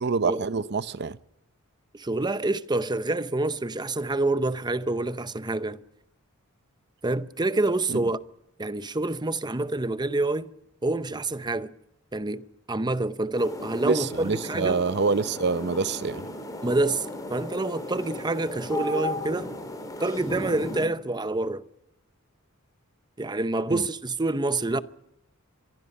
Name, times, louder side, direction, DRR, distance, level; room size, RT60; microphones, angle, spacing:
voice 1, 0.0-1.2 7.9-8.0 13.8-16.2 23.7-23.8, right 4 dB, 50° right, 0.7 m, -26 dB
voice 2, 1.9-5.8 7.0-8.2 8.6-10.5 10.8-11.7 12.1-14.8 16.6-19.5 20.0-21.7 23.2-24.8, right 2 dB, 20° right, 0.8 m, -27 dB
sound 1, 13.4-20.9, left 1 dB, 15° left, 4.0 m, -35 dB
25.0 x 22.5 x 5.5 m
head